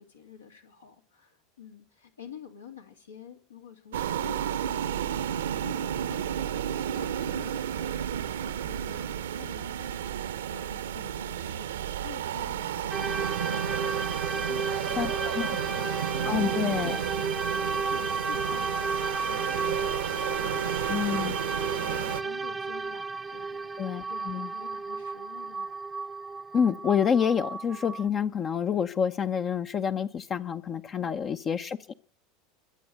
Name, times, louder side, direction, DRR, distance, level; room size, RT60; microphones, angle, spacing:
voice 1, 0.0-21.2 21.5-25.7 31.0-31.3, left 7 dB, 80° left, 3 dB, 2.8 m, -48 dB
sound 1, 3.9-22.2, right 10 dB, 70° right, 0.9 m, -32 dB
sound 2, 12.9-28.1, right 4 dB, 15° right, 0.6 m, -33 dB
voice 2, 15.0-15.5 16.3-17.0 20.9-21.3 23.8-24.5 26.5-31.9, left 7 dB, 35° left, 10 dB, 0.7 m, -28 dB
23.0 x 7.9 x 6.7 m, 0.44 s
figure-of-eight pair, 80°, 0 cm